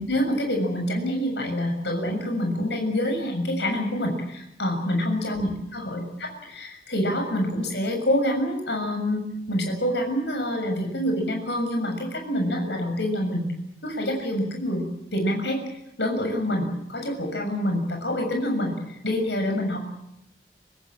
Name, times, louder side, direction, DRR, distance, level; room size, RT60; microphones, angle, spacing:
voice 1, 0.0-13.5 13.8-15.6 16.0-19.9, equal, 80° left, 4 dB, 6.8 m, -26 dB
25.5 x 18.0 x 8.8 m, 0.83 s
head